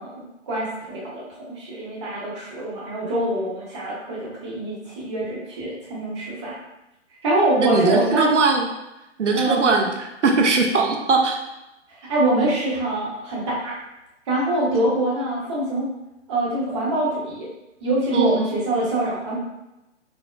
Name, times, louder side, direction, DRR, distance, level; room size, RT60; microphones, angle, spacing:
voice 1, 0.0-6.5 7.2-8.3 9.3-9.7 12.1-13.8 14.3-15.9 16.3-17.5 17.8-19.4, right 1 dB, 25° right, -6 dB, 0.7 m, -24 dB
voice 2, 7.6-8.7 9.2-11.4 18.1-18.6, right 4 dB, 70° right, 2 dB, 0.5 m, -20 dB
4.3 x 2.0 x 2.3 m, 0.94 s
figure-of-eight pair, 135°, 37 cm